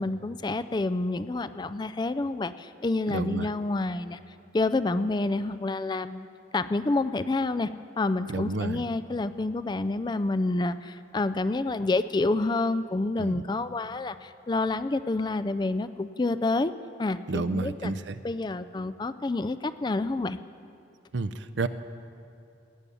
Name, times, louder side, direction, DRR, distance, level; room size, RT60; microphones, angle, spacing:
voice 1, 0.0-4.2 4.5-6.3 6.5-7.7 8.0-16.7 17.0-17.9 18.2-20.4, left 2 dB, 20° left, 12 dB, 0.3 m, -28 dB
voice 2, 3.1-3.5 8.3-8.8 13.2-13.4 17.3-18.2 21.1-21.7, right 3 dB, 70° right, 11 dB, 0.6 m, -30 dB
17.5 x 7.0 x 9.9 m, 2.5 s
head